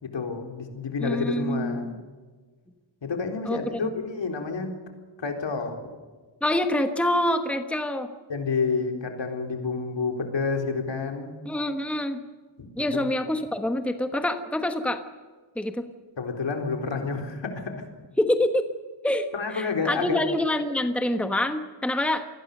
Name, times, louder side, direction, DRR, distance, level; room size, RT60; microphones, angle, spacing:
voice 1, 0.0-2.0 3.0-4.7 5.2-5.8 8.3-11.3 12.8-13.1 16.2-17.9 19.3-20.2, left 4 dB, 70° left, 3 dB, 4.0 m, -29 dB
voice 2, 1.0-2.0 3.4-3.9 6.4-8.1 11.4-12.2 12.8-15.0 15.6-15.9 18.2-18.6 19.0-22.3, left 1 dB, 5° left, 7 dB, 1.3 m, -26 dB
27.5 x 20.5 x 6.7 m, 1.4 s
wide cardioid pair, 165°, 45 cm